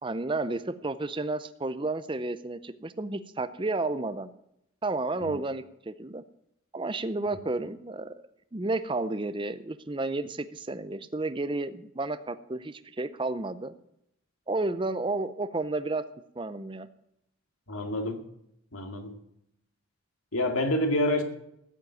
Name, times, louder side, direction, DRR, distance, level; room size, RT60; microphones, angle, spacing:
voice 1, 0.0-4.3 4.8-6.2 6.7-8.1 8.5-13.7 14.5-16.0 16.4-16.9, right 2 dB, 25° right, 11 dB, 0.6 m, -31 dB
voice 2, 17.7-18.2 18.7-19.1 20.3-21.2, left 1 dB, 85° left, 5 dB, 2.2 m, -27 dB
14.5 x 7.6 x 9.2 m, 0.77 s
head